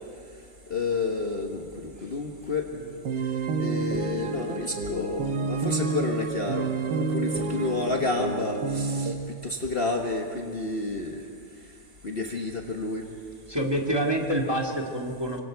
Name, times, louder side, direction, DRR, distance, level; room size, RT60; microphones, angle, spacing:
voice 1, 0.7-2.7 3.6-6.7 7.0-9.1 9.4-11.2 12.0-13.0, left 3 dB, 40° left, 2 dB, 1.3 m, -30 dB
sound 1, 2.7-9.1, right 4 dB, 85° right, 1.8 m, -29 dB
voice 2, 13.5-15.4, right 1 dB, 15° right, 0 dB, 1.9 m, -27 dB
26.0 x 24.5 x 4.6 m, 2.2 s
omnidirectional pair, 1.8 m